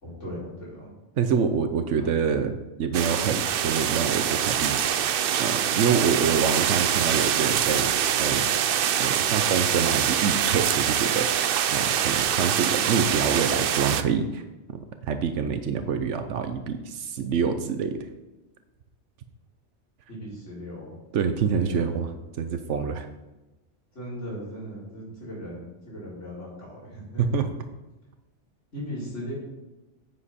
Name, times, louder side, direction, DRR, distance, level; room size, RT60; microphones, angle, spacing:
voice 1, 0.0-0.9 1.9-2.1 20.1-21.0 21.5-22.0 23.9-27.4 28.7-29.3, equal, 90° left, -7 dB, 4.5 m, -38 dB
voice 2, 1.2-4.8 5.4-7.9 8.2-8.5 9.0-11.3 11.7-14.4 15.0-18.1 21.1-22.1 22.4-23.1 27.2-27.5, right 6 dB, 85° right, 8 dB, 1.1 m, -26 dB
sound 1, 2.9-14.0, right 9 dB, 60° right, 0.7 m, -24 dB
9.8 x 7.9 x 4.2 m, 1.0 s
omnidirectional pair, 1.2 m